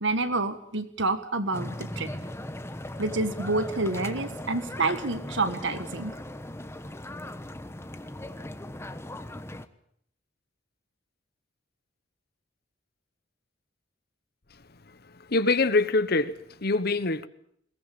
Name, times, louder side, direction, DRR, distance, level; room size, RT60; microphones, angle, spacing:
voice 1, 0.0-2.1 3.0-6.1, right 3 dB, 65° right, 1.5 m, -28 dB
sound 1, 1.5-9.7, left 1 dB, 15° left, 1.1 m, -38 dB
voice 2, 14.8-17.3, left 3 dB, 50° left, 1.1 m, -25 dB
21.5 x 19.0 x 8.7 m
head